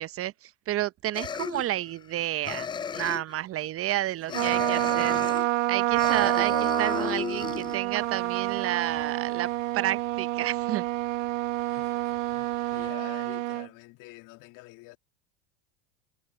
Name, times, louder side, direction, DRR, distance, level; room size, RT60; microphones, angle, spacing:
voice 1, 0.0-10.8, right 14 dB, 35° right, 0.7 m, -31 dB
sound 1, 1.1-2.2 2.4-3.4 4.3-5.5 5.9-7.8, left 7 dB, 15° left, 0.3 m, -34 dB
voice 2, 4.3-5.0 5.9-6.2 7.4-7.6 11.7-15.0, left 21 dB, 55° left, 2.2 m, -48 dB
Trumpet, 4.3-13.7, right 18 dB, 85° right, 0.6 m, -28 dB
sound 2, 7.1-13.0, left 9 dB, 35° left, 6.7 m, -55 dB
hypercardioid pair, 95°, 38 cm